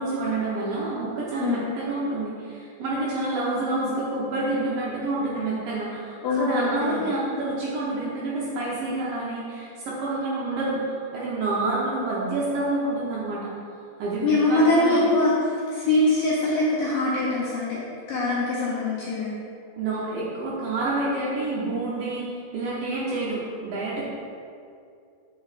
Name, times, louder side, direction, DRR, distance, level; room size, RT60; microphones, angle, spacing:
voice 1, 0.0-13.5 14.0-15.0 19.8-24.0, right 2 dB, 75° right, -7 dB, 2.1 m, -28 dB
voice 2, 6.2-7.0 14.2-15.4 15.7-17.8 18.1-19.3, left 2 dB, 75° left, -7 dB, 2.1 m, -23 dB
8.3 x 6.9 x 2.5 m, 2.4 s
omnidirectional pair, 4.9 m